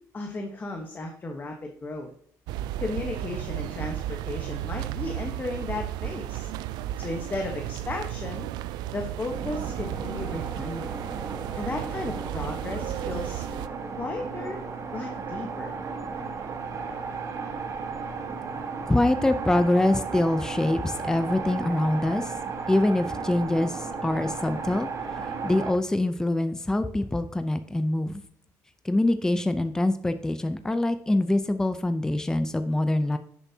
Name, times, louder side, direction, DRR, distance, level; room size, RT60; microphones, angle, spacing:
voice 1, 0.1-2.1 2.8-6.5 7.0-8.5 8.9-11.0 11.5-13.4 13.9-14.6 14.9-15.7, left 2 dB, 25° left, 3 dB, 1.2 m, -34 dB
sound 1, 2.5-13.7, right 13 dB, 85° right, 0.4 m, -34 dB
sound 2, 9.3-25.7, right 4 dB, 45° right, 1.3 m, -35 dB
voice 2, 18.9-22.3 22.7-24.9 25.4-28.2 28.8-33.2, left 1 dB, 10° left, 9 dB, 0.6 m, -24 dB
10.0 x 7.1 x 2.8 m, 0.62 s
cardioid pair, 110°, 7 cm